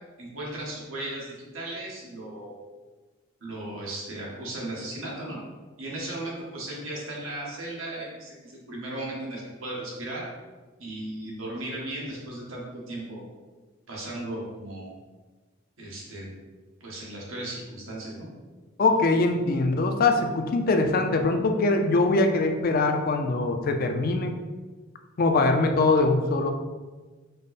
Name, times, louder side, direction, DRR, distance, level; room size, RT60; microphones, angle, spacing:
voice 1, 0.2-2.5 3.4-5.4 5.8-10.3 10.8-13.2 13.9-14.9 15.8-16.4 16.8-18.3, right 1 dB, 90° right, -4 dB, 1.4 m, -36 dB
voice 2, 18.8-24.3 25.2-26.5, left 3 dB, 45° left, 5 dB, 0.4 m, -22 dB
5.3 x 2.1 x 4.0 m, 1.3 s
head